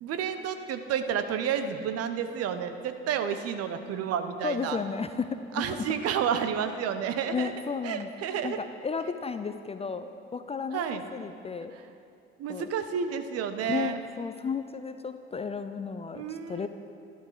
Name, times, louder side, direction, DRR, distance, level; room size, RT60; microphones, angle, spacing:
voice 1, 0.0-4.8 5.5-7.5 7.8-8.6 10.7-11.0 12.4-14.0 16.1-16.7, right 8 dB, 45° right, 9 dB, 0.9 m, -30 dB
voice 2, 4.4-5.8 7.3-8.1 8.4-11.7 12.5-12.7 13.7-16.7, left 5 dB, 20° left, 10 dB, 0.5 m, -33 dB
12.5 x 12.0 x 4.8 m, 2.5 s
figure-of-eight pair, 60°, 33 cm